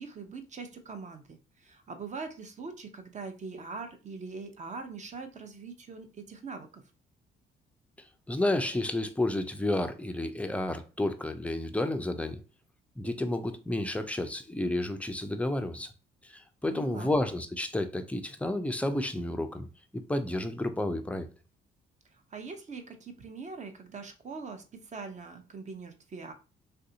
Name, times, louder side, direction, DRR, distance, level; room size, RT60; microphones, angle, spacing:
voice 1, 0.0-6.8 16.7-17.1 22.3-26.3, right 4 dB, 35° right, 0.7 m, -42 dB
voice 2, 8.3-12.4 13.0-15.9 16.2-19.7 19.9-21.3, left 1 dB, 5° left, 0.4 m, -31 dB
3.4 x 2.6 x 2.7 m
cardioid pair, 90°, 20 cm